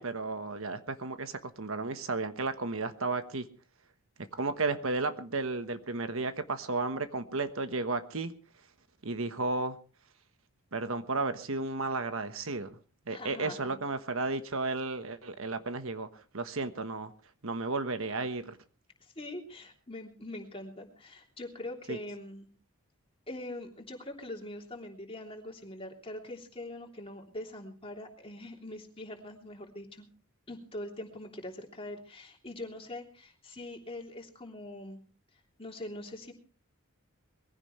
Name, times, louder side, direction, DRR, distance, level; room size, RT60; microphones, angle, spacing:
voice 1, 0.0-3.5 4.4-8.3 9.0-9.8 10.7-12.7 13.1-16.1 16.3-17.1 17.4-18.6 21.9-22.0, right 3 dB, 65° right, 9 dB, 1.3 m, -33 dB
voice 2, 13.1-13.8 19.0-22.5 23.3-30.1 30.5-35.0 35.6-36.3, left 1 dB, 25° left, 2 dB, 3.2 m, -43 dB
22.0 x 16.0 x 3.3 m, 0.37 s
head